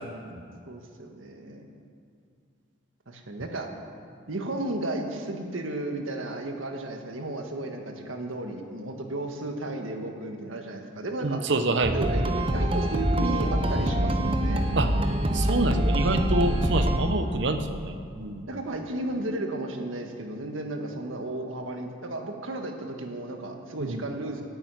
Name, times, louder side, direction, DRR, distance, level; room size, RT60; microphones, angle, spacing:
voice 1, 0.7-1.6 3.1-3.7 4.3-11.4 11.9-14.6 18.5-24.4, right 2 dB, 85° right, 3 dB, 1.5 m, -34 dB
voice 2, 11.2-12.3 14.8-14.9 15.3-18.4 23.8-24.0, right 2 dB, 65° right, 8 dB, 0.8 m, -27 dB
sound 1, 11.8-17.0, right 1 dB, 25° right, 0.8 m, -25 dB
10.5 x 8.9 x 9.2 m, 2.3 s
head